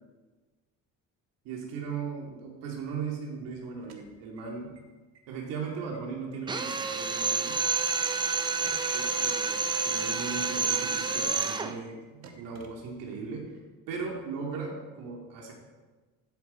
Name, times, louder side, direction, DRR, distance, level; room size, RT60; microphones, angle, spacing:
voice 1, 1.4-4.7 5.3-7.6 8.9-13.6 13.9-15.5, right 5 dB, 85° right, -1 dB, 2.6 m, -38 dB
sound 1, 3.7-4.8 5.1-5.2 5.5-6.0 6.3-7.9 8.3-9.2 9.5-9.6 9.9-10.0 10.3-10.4 10.7-10.8 11.1-11.2 11.5-11.6 11.9-12.0 12.2-13.3, right 4 dB, 50° right, 1.3 m, -52 dB
Drill, 6.5-11.8, right 4 dB, 15° right, 0.4 m, -29 dB
14.5 x 8.3 x 4.5 m, 1.3 s
cardioid pair, 175°, 33 cm